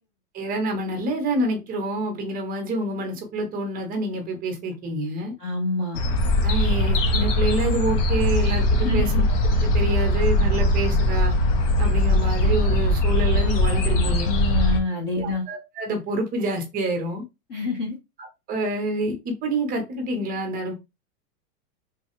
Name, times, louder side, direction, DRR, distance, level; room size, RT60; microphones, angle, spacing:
voice 1, 0.3-5.3 6.4-9.2 9.6-11.4 11.8-14.3 15.2-17.2 18.5-20.7, right 1 dB, 20° right, 0.7 m, -27 dB
voice 2, 5.4-6.0 8.8-9.2 13.6-15.4 17.5-18.0, left 3 dB, 20° left, 0.4 m, -28 dB
sound 1, 5.9-14.8, left 1 dB, 50° left, 0.8 m, -21 dB
3.2 x 2.2 x 2.9 m
supercardioid pair, 145°, 46 cm